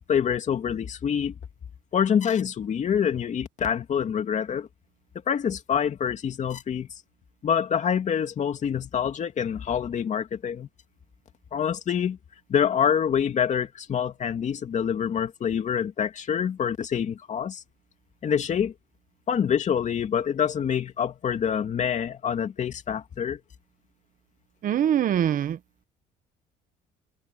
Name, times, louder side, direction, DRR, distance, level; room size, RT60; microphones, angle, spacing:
voice 1, 0.1-1.3 1.9-4.7 5.3-6.9 7.4-10.7 11.5-12.2 12.5-17.6 18.2-18.7 19.3-23.4, left 8 dB, 45° left, 2.6 m, -26 dB
voice 2, 24.6-25.6, right 10 dB, 55° right, 1.3 m, -23 dB
cardioid pair, 110°, 17 cm